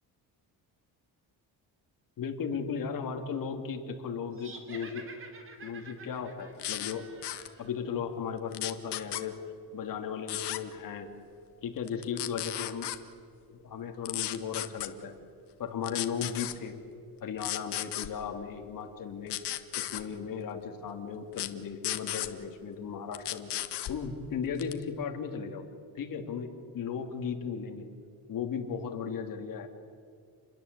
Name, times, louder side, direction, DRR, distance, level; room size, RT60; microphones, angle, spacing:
voice 1, 2.2-5.0 5.6-7.0 7.6-9.4 9.7-11.1 11.6-12.9 13.5-15.1 15.6-16.8 17.2-23.5 23.9-25.6 25.9-26.5 26.7-27.9 28.3-29.7, left 6 dB, 55° left, 4 dB, 3.1 m, -36 dB
sound 1, 4.3-7.8, right 3 dB, 30° right, 3.3 m, -49 dB
sound 2, 6.6-6.9 7.2-7.5 8.5-9.2 10.3-10.6 11.9-13.0 14.1-14.9 15.8-16.6 17.4-18.1 19.3-20.0 21.3-21.5 21.8-22.3 23.1-24.0 24.6-24.8, left 14 dB, 80° left, 1.6 m, -34 dB
29.0 x 21.5 x 8.4 m, 2.3 s
cardioid pair, 165°, 40 cm